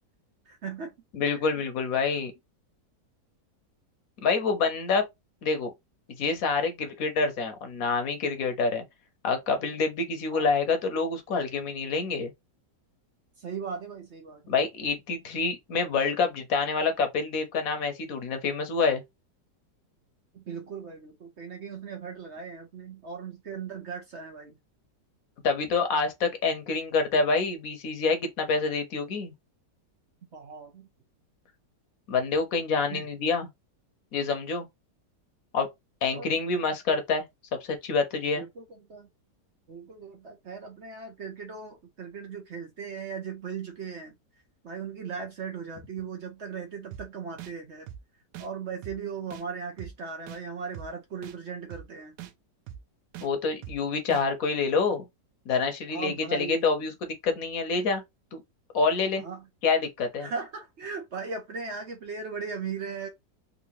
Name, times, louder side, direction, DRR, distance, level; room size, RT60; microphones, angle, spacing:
voice 1, 0.5-0.9 1.4-1.5 10.3-10.5 13.4-14.5 20.3-24.6 30.3-30.9 32.9-33.1 36.1-36.6 38.4-39.1 39.7-44.1 44.6-47.9 48.4-52.1 55.9-56.7 59.2-59.5 60.2-63.1, right 5 dB, 55° right, 0.8 m, -38 dB
voice 2, 1.1-2.3 4.2-5.1 5.4-5.7 6.2-8.8 9.2-12.3 14.5-19.0 25.4-29.3 32.1-33.5 34.1-34.7 35.5-35.7 36.0-37.2 37.5-38.4 53.2-55.0 55.5-58.0 58.3-58.4 58.7-59.2 59.6-60.3, left 4 dB, 60° left, 1.1 m, -27 dB
sound 1, 46.9-47.0 47.4-47.5 47.9-48.0 48.3-48.5 48.8-49.0 49.3-49.4 49.8-49.9 50.3-50.4 50.7-50.9 51.2-51.4 51.7-51.8 52.2-52.3 52.7-52.8 53.1-53.3 53.6-53.8 54.1-54.2, right 11 dB, 80° right, 1.2 m, -41 dB
3.7 x 2.7 x 3.0 m
omnidirectional pair, 1.9 m